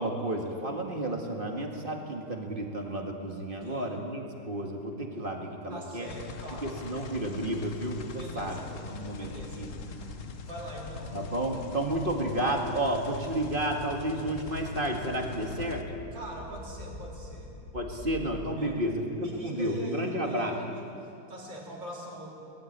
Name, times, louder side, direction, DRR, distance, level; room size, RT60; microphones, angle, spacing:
voice 1, 0.0-6.1 6.6-8.6 8.9-9.7 11.1-15.9 17.7-20.6, right 1 dB, 25° right, 2 dB, 2.0 m, -31 dB
sound 1, 3.9-19.0, left 2 dB, 25° left, 1.7 m, -47 dB
voice 2, 5.7-6.8 8.2-8.8 9.2-11.2 16.1-17.5 18.6-18.8 19.2-22.3, right 1 dB, 70° right, -4 dB, 4.8 m, -43 dB
sound 2, 6.1-15.8, left 5 dB, 50° left, 1.1 m, -42 dB
20.0 x 14.0 x 9.4 m, 2.7 s
omnidirectional pair, 2.1 m